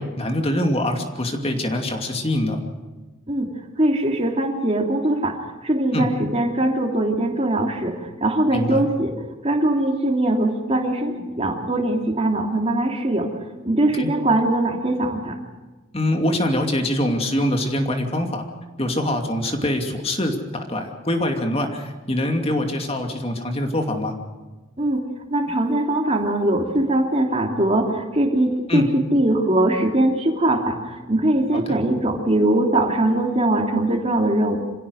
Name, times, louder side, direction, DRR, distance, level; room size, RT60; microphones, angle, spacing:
voice 1, 0.0-2.6 5.9-6.1 8.5-8.8 14.0-14.1 15.9-18.4 18.8-24.1 28.7-28.9 31.5-31.8, left 1 dB, 30° left, 4 dB, 2.6 m, -24 dB
voice 2, 3.8-9.1 9.4-13.3 13.6-15.3 24.8-34.6, right 1 dB, 30° right, 2 dB, 3.0 m, -21 dB
27.0 x 16.5 x 6.5 m, 1.2 s
head